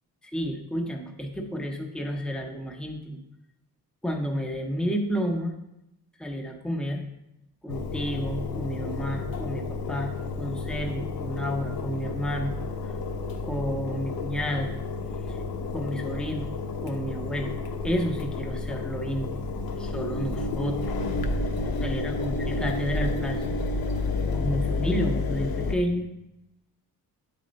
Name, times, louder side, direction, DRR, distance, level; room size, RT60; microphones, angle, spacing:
voice 1, 0.3-3.2 4.0-5.5 6.2-7.0 7.6-12.6 13.4-14.7 15.3-15.4 15.7-16.5 16.8-17.5 17.8-19.3 19.8-20.9 21.8-23.5 24.3-26.1, equal, ahead, 2 dB, 0.6 m, -30 dB
Engine, 7.7-25.8, left 3 dB, 75° left, 0.9 m, -31 dB
9.4 x 4.2 x 5.1 m, 0.88 s
cardioid pair, 175°, 36 cm